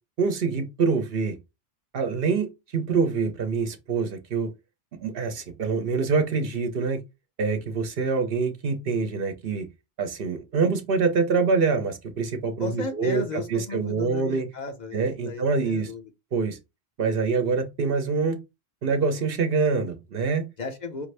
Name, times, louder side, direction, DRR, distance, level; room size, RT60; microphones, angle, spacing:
voice 1, 0.2-1.4 1.9-4.5 4.9-7.0 7.4-9.7 10.0-14.5 14.9-15.9 16.3-16.6 17.0-18.4 18.8-20.5, right 4 dB, 65° right, 0.9 m, -25 dB
voice 2, 12.6-16.1 20.6-21.1, left 3 dB, 50° left, 0.8 m, -34 dB
5.2 x 2.5 x 3.2 m
omnidirectional pair, 1.0 m